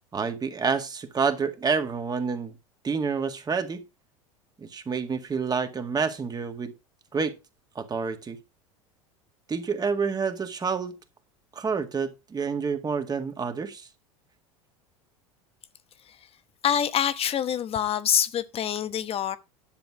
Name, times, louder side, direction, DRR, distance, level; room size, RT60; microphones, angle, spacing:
voice 1, 0.1-2.5 2.8-3.8 4.6-6.7 7.1-7.3 7.8-8.4 9.5-11.0 11.6-13.9, right 5 dB, 25° right, 1.9 m, -28 dB
voice 2, 16.6-19.4, left 9 dB, 35° left, 1.0 m, -25 dB
11.0 x 6.9 x 4.7 m
hypercardioid pair, 80°, 17 cm